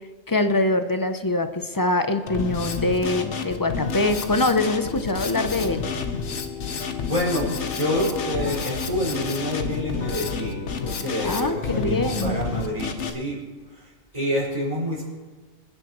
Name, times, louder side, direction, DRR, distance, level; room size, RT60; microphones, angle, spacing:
voice 1, 0.3-5.9 11.2-12.3, left 2 dB, 25° left, 8 dB, 0.5 m, -24 dB
Drum kit, 2.3-13.1, left 5 dB, 80° left, 1.3 m, -30 dB
voice 2, 6.6-13.4 13.7-15.0, equal, 30° right, -6 dB, 5.1 m, -28 dB
27.0 x 9.9 x 3.0 m, 1.3 s
omnidirectional pair, 1.2 m